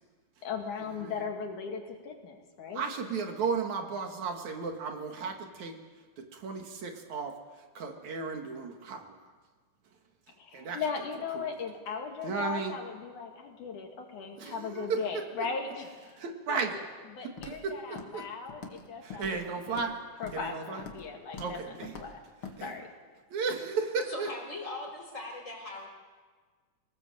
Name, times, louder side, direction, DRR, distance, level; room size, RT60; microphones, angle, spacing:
voice 1, 0.4-2.9 10.4-16.8 17.1-19.9 20.2-22.2 22.6-22.9, left 5 dB, 70° left, 2 dB, 3.7 m, -38 dB
voice 2, 2.7-5.8 6.2-7.3 7.7-9.2 10.5-10.8 11.3-11.4 12.2-12.8 14.4-15.2 16.2-16.7 17.5-18.2 19.0-19.9 20.3-20.8 21.4-22.0 22.6-22.7 23.3-24.3, right 5 dB, 65° right, 4 dB, 3.1 m, -34 dB
Walk footsteps, 17.4-17.7 18.0-18.2 18.5-18.9 19.1-19.9 20.2-20.5 20.8-21.1 21.3-21.6 21.8-22.1 22.4-22.6, left 5 dB, 45° left, 2.4 m, -44 dB
voice 3, 24.0-25.9, left 2 dB, 20° left, 1 dB, 5.0 m, -40 dB
25.5 x 19.0 x 7.7 m, 1.5 s
omnidirectional pair, 3.7 m